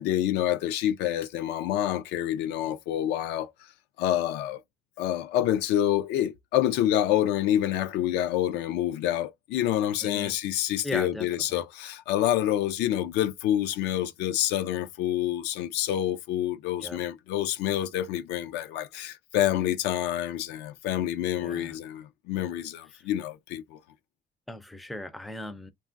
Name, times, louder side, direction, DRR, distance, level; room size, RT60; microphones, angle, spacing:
voice 1, 0.0-3.5 4.0-4.6 5.0-23.8, left 12 dB, 85° left, 0.4 m, -27 dB
voice 2, 10.0-10.3 10.8-11.6 16.8-17.0 21.4-21.8 22.9-23.0 24.5-25.7, left 1 dB, ahead, 0.3 m, -38 dB
3.0 x 2.3 x 2.4 m
cardioid pair, 110°, 17 cm